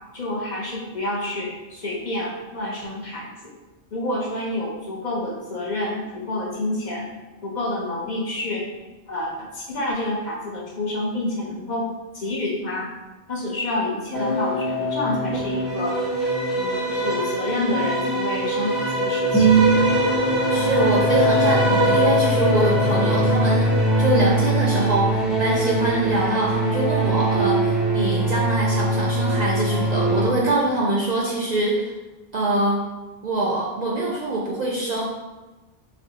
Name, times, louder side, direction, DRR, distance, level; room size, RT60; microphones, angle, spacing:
voice 1, 0.1-3.5 3.9-7.1 7.4-8.7 9.1-11.9 12.1-12.9 13.3-16.0 16.5-19.6, left 1 dB, 50° left, -3 dB, 0.7 m, -28 dB
sound 1, 14.1-30.2, right 1 dB, ahead, 0.6 m, -21 dB
voice 2, 20.5-31.9 32.3-32.8 33.2-35.1, right 2 dB, 55° right, -3 dB, 0.5 m, -24 dB
4.2 x 3.0 x 2.7 m, 1.2 s
omnidirectional pair, 1.1 m